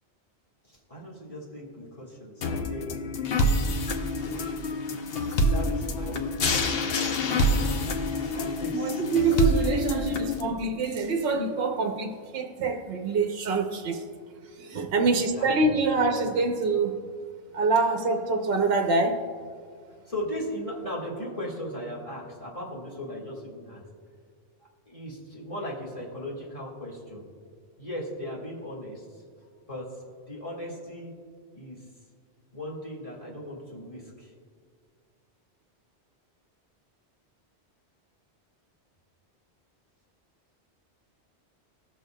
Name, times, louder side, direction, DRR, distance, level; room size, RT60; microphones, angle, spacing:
voice 1, 0.7-3.2 4.1-4.6 5.5-7.9 8.3-9.0 15.0-15.1 15.3-15.8 20.1-23.8 24.9-27.3 27.8-29.2 29.7-30.0 30.3-31.1 31.5-31.8 32.5-34.3, equal, 30° left, -5 dB, 1.8 m, -38 dB
sound 1, 2.4-10.4, left 1 dB, 65° left, 0.8 m, -27 dB
voice 2, 8.7-14.0 14.6-17.0 17.5-19.2, right 3 dB, 65° right, 4 dB, 0.9 m, -25 dB
19.5 x 6.6 x 2.2 m, 2.1 s
omnidirectional pair, 1.2 m